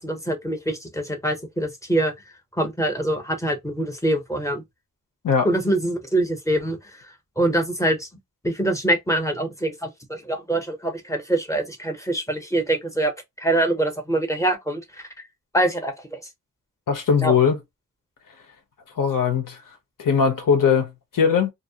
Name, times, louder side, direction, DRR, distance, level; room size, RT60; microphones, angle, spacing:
voice 1, 0.0-2.1 2.5-4.6 5.4-6.8 7.4-8.1 8.4-13.1 13.4-14.8 15.5-16.2 17.2-17.3, right 1 dB, 10° left, 0.7 m, -24 dB
voice 2, 16.9-17.6 19.0-19.6 20.0-21.5, left 6 dB, 70° left, 0.9 m, -20 dB
2.7 x 2.1 x 2.7 m
wide cardioid pair, 115°, 34 cm